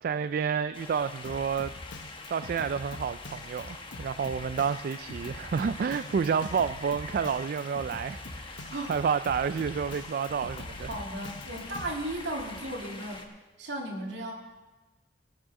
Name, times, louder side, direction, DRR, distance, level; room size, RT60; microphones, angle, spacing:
voice 1, 0.0-1.7 2.3-10.9, right 6 dB, 55° right, 13 dB, 0.3 m, -30 dB
sound 1, 0.7-13.3, left 3 dB, 30° left, 1.2 m, -44 dB
Drum kit, 1.2-11.9, left 2 dB, 90° left, 1.1 m, -44 dB
voice 2, 10.8-13.2 13.6-14.3, right 1 dB, 70° right, -1 dB, 2.7 m, -35 dB
18.5 x 6.2 x 6.3 m, 1.2 s
head